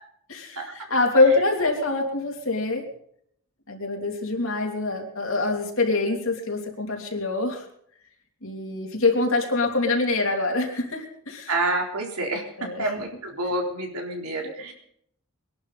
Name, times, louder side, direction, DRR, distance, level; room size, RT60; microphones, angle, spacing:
voice 1, 0.3-2.9 3.7-7.6 8.4-11.5 12.6-12.8, left 3 dB, 65° left, 2 dB, 3.1 m, -24 dB
voice 2, 11.5-14.7, right 2 dB, 90° right, 1 dB, 3.8 m, -28 dB
23.0 x 11.5 x 4.2 m, 0.68 s
head